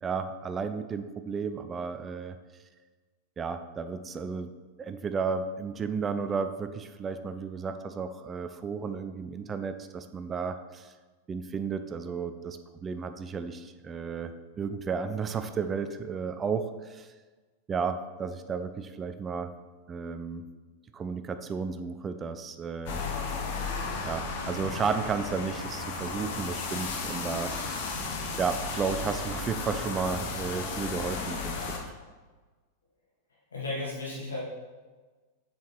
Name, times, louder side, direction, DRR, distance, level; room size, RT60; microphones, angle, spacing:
voice 1, 0.0-2.4 3.4-4.5 4.8-10.9 11.3-14.3 14.6-17.1 17.7-19.5 19.9-20.5 20.9-23.0 23.6-23.7 24.1-28.0 28.4-31.6, right 5 dB, 20° right, 10 dB, 0.4 m, -33 dB
sound 1, 22.9-31.8, left 4 dB, 50° left, 1.0 m, -34 dB
voice 2, 33.5-34.4, left 2 dB, 70° left, -5 dB, 2.1 m, -34 dB
7.0 x 5.0 x 4.2 m, 1.3 s
figure-of-eight pair, 90°, 0 cm